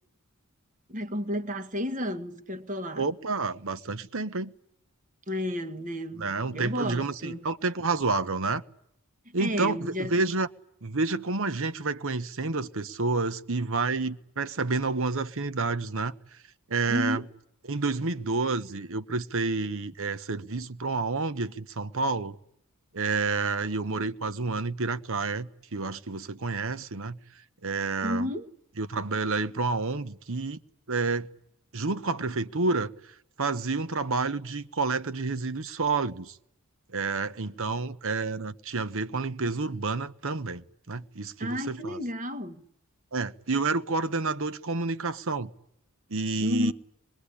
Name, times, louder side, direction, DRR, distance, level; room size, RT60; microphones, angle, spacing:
voice 1, 0.9-3.1 5.3-7.4 9.4-10.2 16.9-17.3 28.0-28.5 41.4-42.6 46.4-46.7, left 1 dB, 35° right, 1.5 m, -32 dB
voice 2, 3.0-4.5 6.2-8.6 9.3-10.5 10.8-16.1 16.7-17.2 17.7-22.4 22.9-27.2 27.6-28.3 28.8-30.6 30.9-31.3 31.7-36.4 36.9-42.0 43.1-45.5 46.1-46.7, right 3 dB, 60° right, 1.0 m, -29 dB
24.0 x 22.0 x 10.0 m
head